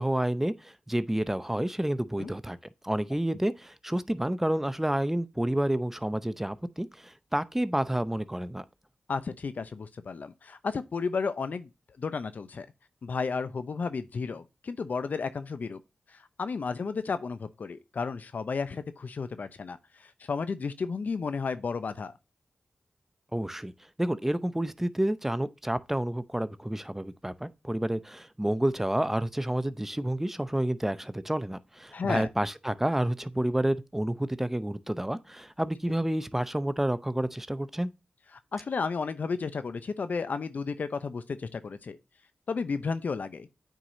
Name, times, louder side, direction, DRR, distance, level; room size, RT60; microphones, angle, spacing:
voice 1, 0.0-2.6 2.8-8.6 23.3-23.7 24.0-37.9, right 1 dB, 10° right, 0.7 m, -29 dB
voice 2, 9.1-11.7 12.0-12.7 13.0-15.8 16.4-19.8 20.3-22.1 31.9-32.3 38.5-42.0 42.5-43.5, left 5 dB, 70° left, 0.7 m, -32 dB
9.0 x 4.8 x 2.7 m
cardioid pair, 45°, 3 cm